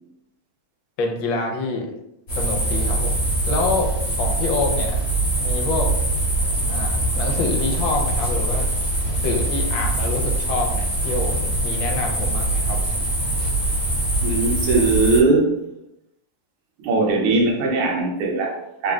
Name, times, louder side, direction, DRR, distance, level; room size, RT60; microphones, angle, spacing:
voice 1, 1.0-1.9 2.4-3.2 3.5-5.0 5.4-5.9 6.7-8.6 9.1-12.8, left 3 dB, 70° left, 1.4 m, -26 dB
sound 1, 2.3-15.2, right 2 dB, 35° left, 1.0 m, -23 dB
voice 2, 14.2-15.6 16.8-18.9, right 3 dB, 85° right, 1.7 m, -20 dB
3.8 x 3.6 x 2.3 m
omnidirectional pair, 2.3 m